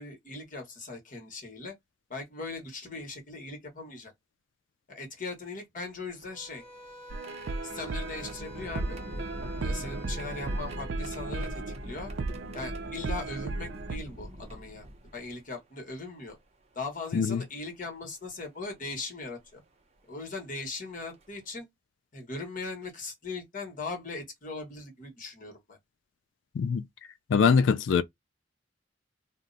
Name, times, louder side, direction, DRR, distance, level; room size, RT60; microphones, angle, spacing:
voice 1, 0.0-1.7 2.1-4.1 4.9-6.6 7.6-9.0 9.6-12.1 12.5-14.8 15.1-16.4 16.7-19.6 20.0-21.7 22.1-25.8, left 3 dB, 45° left, 1.3 m, -39 dB
sound 1, 6.1-15.4 16.3-16.4 17.8-18.1 18.8-19.0 20.6-20.7 21.1-21.4, equal, 35° right, 0.7 m, -42 dB
sound 2, 6.3-10.8, equal, 15° left, 1.4 m, -49 dB
sound 3, 7.1-14.0, right 3 dB, 70° right, 0.5 m, -36 dB
voice 2, 27.3-28.0, left 6 dB, 75° left, 0.4 m, -23 dB
2.6 x 2.0 x 3.9 m
head